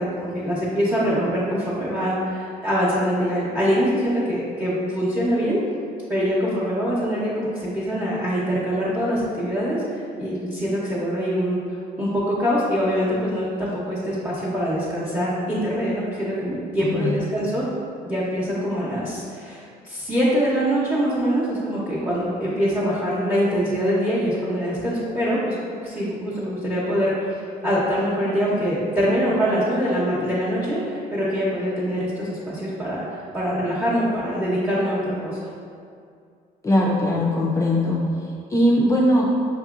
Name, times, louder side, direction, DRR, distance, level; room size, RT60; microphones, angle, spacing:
voice 1, 0.0-5.6 6.1-11.6 12.0-17.7 18.0-25.6 25.8-35.5, equal, 10° right, -9 dB, 0.7 m, -24 dB
voice 2, 16.8-17.3 36.6-38.0 38.5-39.3, left 1 dB, 20° left, -3 dB, 0.4 m, -20 dB
5.7 x 2.7 x 2.4 m, 2.3 s
cardioid pair, 110°, 17 cm